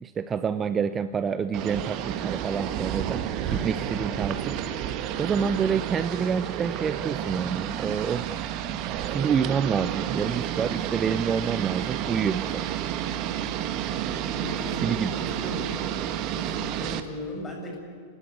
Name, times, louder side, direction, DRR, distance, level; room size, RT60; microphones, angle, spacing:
voice 1, 0.0-3.2 3.5-4.6 5.2-8.3 9.0-12.7 14.8-15.1, right 6 dB, 20° right, 13 dB, 0.7 m, -27 dB
sound 1, 1.5-17.0, right 10 dB, 40° right, 1.5 m, -30 dB
voice 2, 14.3-15.7 16.3-17.8, left 1 dB, 20° left, 1 dB, 7.0 m, -37 dB
27.0 x 20.0 x 8.3 m, 2.3 s
figure-of-eight pair, 90°, 0 cm